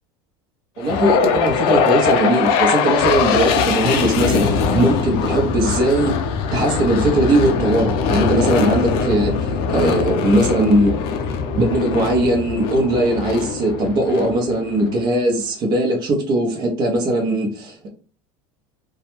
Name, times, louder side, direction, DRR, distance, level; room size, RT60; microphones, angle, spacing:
sound 1, 0.8-15.0, left 5 dB, 50° left, 0.4 m, -21 dB
voice 1, 0.8-6.1 6.5-9.3 9.7-10.9 11.6-17.9, right 1 dB, 35° right, 0 dB, 0.7 m, -19 dB
2.3 x 2.1 x 3.0 m, 0.39 s
supercardioid pair, 150°, 12 cm